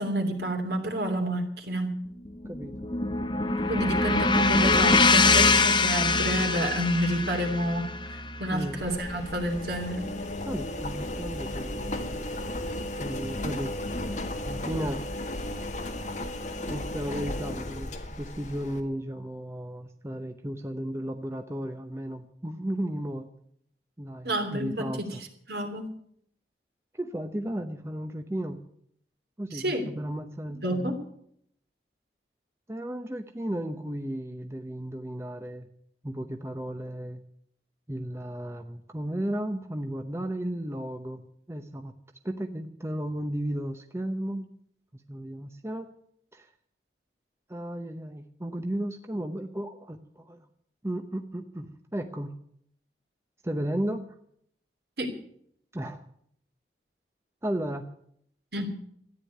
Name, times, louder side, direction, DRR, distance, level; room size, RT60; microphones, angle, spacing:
voice 1, 0.0-2.0 3.7-10.1 24.2-25.2 25.5-25.9 29.5-29.9 30.6-31.0 55.0-55.1 58.5-58.7, right 1 dB, 65° right, 4 dB, 3.0 m, -29 dB
sound 1, 2.3-10.5, left 3 dB, 25° left, 0.9 m, -24 dB
Engine, 8.8-18.8, left 1 dB, 45° left, 1.7 m, -34 dB
voice 2, 10.4-12.2 13.0-13.7 14.4-15.0 16.7-23.3 24.0-25.2 26.9-28.6 29.4-30.9 32.7-35.7 36.0-37.2 37.9-41.9 42.2-44.5 45.1-45.9 46.3-46.5 47.5-50.5 50.8-52.4 53.4-54.1 55.7-56.0 57.4-57.9, right 1 dB, 15° right, 6 dB, 0.8 m, -34 dB
13.5 x 9.7 x 9.3 m, 0.67 s
head